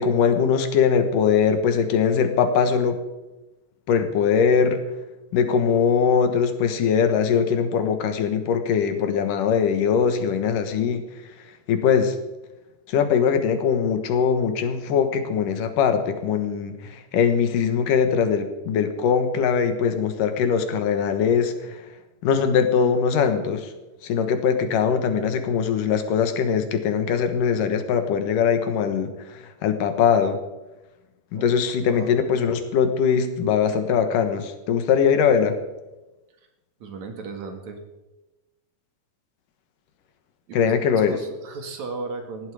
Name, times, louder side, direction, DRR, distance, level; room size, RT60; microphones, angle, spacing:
voice 1, 0.0-3.0 3.9-4.8 5.3-11.0 11.7-12.2 12.9-21.8 22.2-23.7 24.0-30.4 31.3-35.5 40.5-41.2, left 7 dB, 75° left, 8 dB, 2.9 m, -21 dB
voice 2, 31.3-32.3 36.8-37.8 40.5-42.5, right 4 dB, 60° right, 5 dB, 3.0 m, -36 dB
19.0 x 14.5 x 4.9 m, 1.1 s
omnidirectional pair, 3.9 m